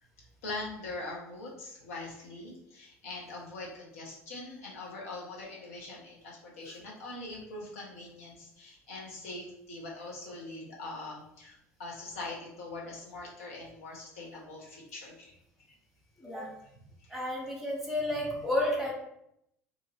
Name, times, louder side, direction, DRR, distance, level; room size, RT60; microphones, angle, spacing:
voice 1, 0.4-15.4 16.7-17.2, left 2 dB, 65° left, -3 dB, 0.9 m, -42 dB
voice 2, 17.1-18.9, left 1 dB, 5° right, -2 dB, 1.0 m, -31 dB
2.7 x 2.5 x 3.0 m, 0.77 s
figure-of-eight pair, 65°, 8 cm